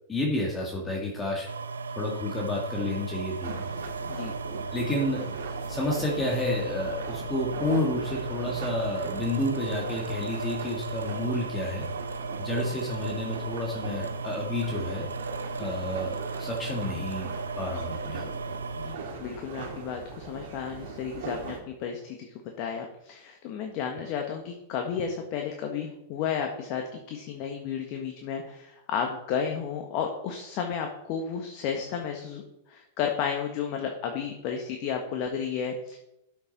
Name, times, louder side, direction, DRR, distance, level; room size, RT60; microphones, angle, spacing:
voice 1, 0.1-1.5 2.0-3.5 4.7-5.2 5.7-11.8 12.4-15.0 15.6-17.3 17.6-18.5, left 1 dB, 15° left, -2 dB, 2.0 m, -30 dB
sound 1, 1.5-19.0, right 4 dB, 80° right, 0.7 m, -36 dB
sound 2, 3.4-21.6, right 4 dB, 65° right, 2.2 m, -40 dB
voice 2, 18.7-22.3 22.6-36.0, left 7 dB, 45° left, 3 dB, 1.4 m, -32 dB
12.5 x 6.4 x 4.2 m, 0.86 s
figure-of-eight pair, 100°, 0 cm